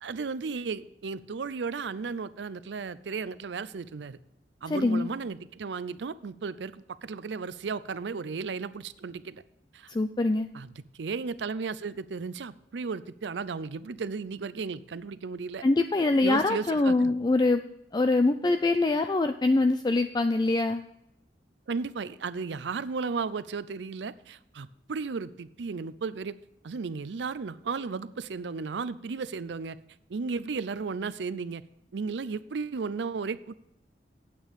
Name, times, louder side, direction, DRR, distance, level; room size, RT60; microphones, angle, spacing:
voice 1, 0.0-4.2 4.6-9.4 9.7-9.9 10.5-15.6 16.2-17.1 21.7-26.3 26.6-29.8 30.1-31.6 31.9-33.5, right 4 dB, 80° right, 16 dB, 0.5 m, -34 dB
voice 2, 4.7-5.1 9.9-10.5 15.6-17.6 17.9-20.8, left 2 dB, 25° left, 8 dB, 0.4 m, -24 dB
8.9 x 8.5 x 5.1 m, 0.80 s
head